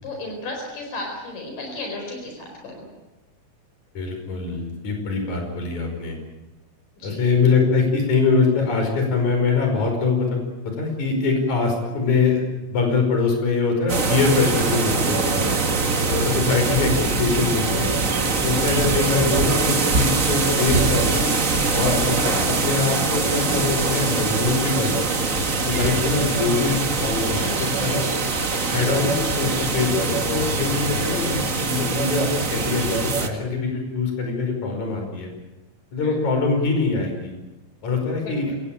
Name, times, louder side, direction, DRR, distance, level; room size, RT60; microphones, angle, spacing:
voice 1, 0.0-2.9 7.0-7.3 15.9-16.6 26.0-26.4 36.0-36.2 38.2-38.6, left 2 dB, 75° left, 1 dB, 6.1 m, -35 dB
voice 2, 3.9-6.2 7.0-12.4 12.7-15.5 16.1-17.9 18.4-21.3 21.7-25.1 25.6-28.1 28.7-35.3 35.9-37.3 37.8-38.5, left 4 dB, 60° left, 3 dB, 6.5 m, -23 dB
sound 1, 13.9-33.3, right 4 dB, 35° right, 1.3 m, -23 dB
27.0 x 18.0 x 8.9 m, 1.0 s
omnidirectional pair, 3.8 m